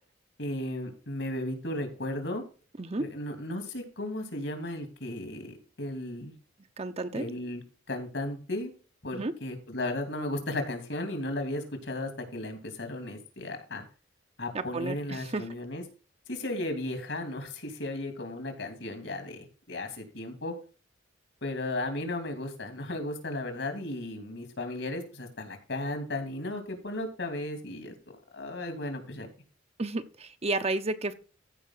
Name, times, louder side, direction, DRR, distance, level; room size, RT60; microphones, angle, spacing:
voice 1, 0.4-2.4 3.0-6.3 7.1-7.6 7.9-8.7 9.0-13.8 14.4-15.8 16.3-20.5 21.4-27.9 28.3-29.3, left 1 dB, 70° left, 6 dB, 3.1 m, -35 dB
voice 2, 2.8-3.1 6.8-7.3 9.1-9.3 14.5-15.4 29.8-31.1, right 2 dB, 35° right, 10 dB, 0.8 m, -32 dB
15.0 x 5.4 x 4.0 m, 0.36 s
head